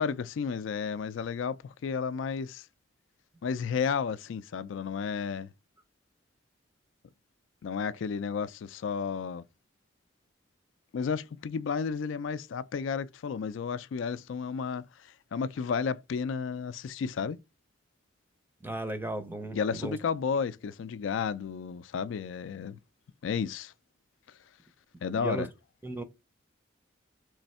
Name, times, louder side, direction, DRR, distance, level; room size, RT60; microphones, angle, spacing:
voice 1, 0.0-2.7 3.4-5.5 7.6-9.4 10.9-17.4 19.5-22.8 23.2-23.7 25.0-25.5, left 6 dB, 75° left, 0.3 m, -32 dB
voice 2, 18.6-20.0 25.2-25.5 25.8-26.0, right 1 dB, 10° right, 0.5 m, -35 dB
3.4 x 3.2 x 4.1 m
head